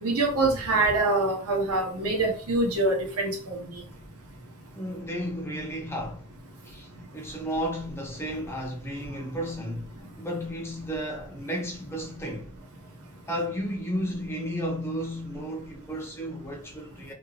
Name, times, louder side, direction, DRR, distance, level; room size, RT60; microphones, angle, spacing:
voice 1, 0.0-3.6, right 2 dB, 80° right, 0.9 m, -25 dB
voice 2, 4.7-6.3 6.6-12.5 13.3-17.1, equal, 10° left, 0.5 m, -33 dB
2.9 x 2.6 x 2.4 m
head